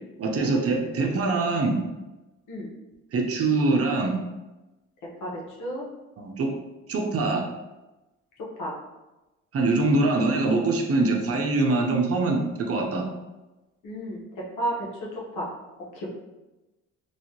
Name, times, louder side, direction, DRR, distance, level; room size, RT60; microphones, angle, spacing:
voice 1, 0.2-1.8 3.1-4.2 6.2-6.5 6.9-7.4 9.5-13.1, right 3 dB, 50° right, 1 dB, 0.7 m, -23 dB
voice 2, 5.2-5.8 8.4-8.7 13.8-14.2 14.6-15.5 15.9-16.1, right 1 dB, 85° left, -4 dB, 1.1 m, -32 dB
3.1 x 2.7 x 2.8 m, 1.1 s
cardioid pair, 90°, 30 cm